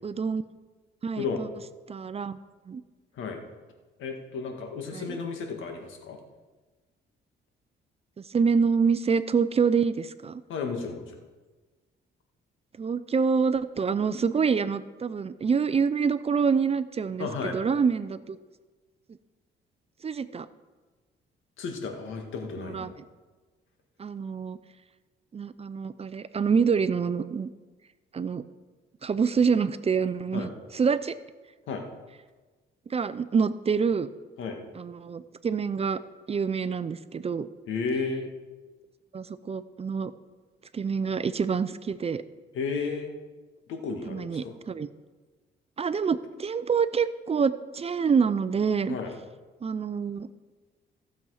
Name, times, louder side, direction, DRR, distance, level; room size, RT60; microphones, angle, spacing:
voice 1, 0.0-0.4 1.0-1.5 1.9-2.4 2.7-2.8 4.9-5.2 8.3-10.4 12.8-18.4 20.0-20.5 22.6-22.9 24.0-24.6 25.3-27.5 28.1-28.4 29.0-31.2 32.9-34.1 34.8-36.0 36.3-37.5 39.1-40.1 40.7-42.2 44.1-44.9 45.8-49.0 49.6-50.3, right 6 dB, 30° right, 14 dB, 0.5 m, -26 dB
voice 2, 4.0-6.2 10.5-11.2 17.2-17.6 21.6-23.0 30.3-30.5 31.7-31.8 34.4-34.6 37.7-38.3 42.5-43.2 43.7-44.5 48.9-49.1, left 4 dB, 80° left, 4 dB, 1.7 m, -33 dB
15.5 x 7.1 x 4.9 m, 1.3 s
cardioid pair, 90°, 20 cm